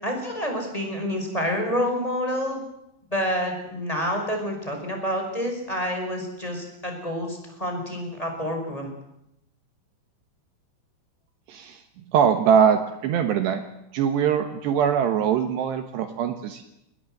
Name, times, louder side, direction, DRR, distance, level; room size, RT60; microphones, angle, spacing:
voice 1, 0.0-2.6 3.1-8.9, equal, 5° left, 3 dB, 5.2 m, -28 dB
voice 2, 11.5-11.8 12.1-13.6 13.9-16.6, right 8 dB, 70° right, 7 dB, 3.3 m, -22 dB
23.5 x 20.5 x 8.0 m, 0.82 s
omnidirectional pair, 5.4 m